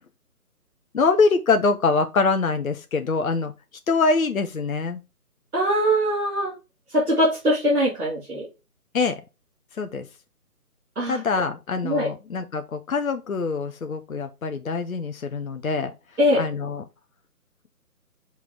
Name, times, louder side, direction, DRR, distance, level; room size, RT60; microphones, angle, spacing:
voice 1, 0.9-3.5 3.9-5.0 8.9-9.2 9.8-10.1 11.1-15.9 16.3-16.8, left 4 dB, 60° left, 0.9 m, -24 dB
voice 2, 5.5-6.5 6.9-8.5 11.0-11.2 11.8-12.1 16.2-16.4, equal, 70° right, 2.4 m, -22 dB
5.8 x 3.9 x 4.5 m
figure-of-eight pair, 145°, 46 cm